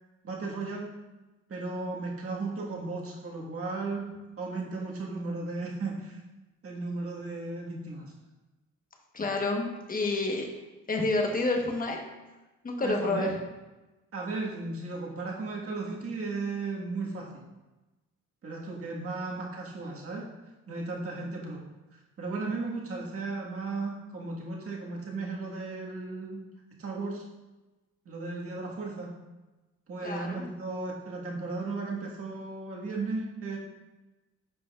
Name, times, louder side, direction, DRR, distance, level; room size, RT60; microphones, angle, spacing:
voice 1, 0.2-0.9 1.5-4.1 4.4-6.2 6.6-8.1 12.8-13.3 14.1-17.4 18.4-20.3 20.7-21.6 22.2-26.5 26.8-27.2 28.0-29.1 29.9-33.6, right 3 dB, 50° right, -2 dB, 1.7 m, -35 dB
voice 2, 9.1-10.5 10.9-12.0 12.6-13.4 30.0-30.5, left 2 dB, 30° left, 2 dB, 1.2 m, -29 dB
9.1 x 5.2 x 2.4 m, 1.1 s
cardioid pair, 90°, 30 cm